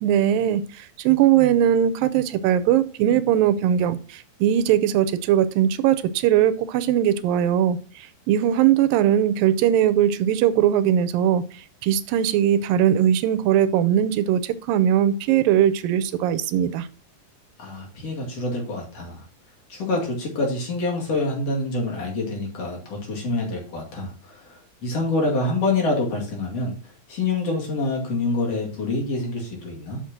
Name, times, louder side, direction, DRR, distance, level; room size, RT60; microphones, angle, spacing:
voice 1, 0.0-11.4 11.8-16.9, right 10 dB, 85° right, 2.4 m, -20 dB
voice 2, 17.6-19.2 19.7-30.0, left 2 dB, 50° left, 3.1 m, -26 dB
6.4 x 5.9 x 5.9 m
omnidirectional pair, 4.0 m